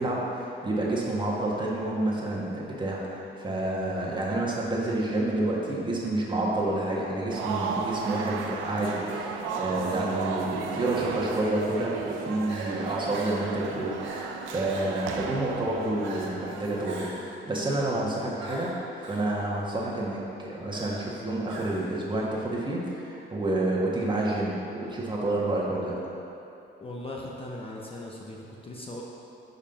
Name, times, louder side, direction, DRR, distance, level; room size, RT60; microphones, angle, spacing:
voice 1, 0.0-18.7 19.0-26.0, right 1 dB, 25° right, -5 dB, 1.5 m, -29 dB
sound 1, 7.3-17.0, right 5 dB, 90° right, 0.5 m, -34 dB
Crying sobbing, 9.7-9.9 11.2-11.7 12.1-12.2 12.4-12.7 13.1-13.5 14.0-14.3 14.6-15.2 16.0-16.4 16.8-17.4 18.4-19.3 20.7-21.1 21.5-22.0, right 2 dB, 70° right, 1.3 m, -43 dB
voice 2, 26.8-29.0, left 1 dB, 30° left, -2 dB, 0.8 m, -39 dB
5.4 x 4.8 x 5.8 m, 2.9 s
cardioid pair, 90°, 20 cm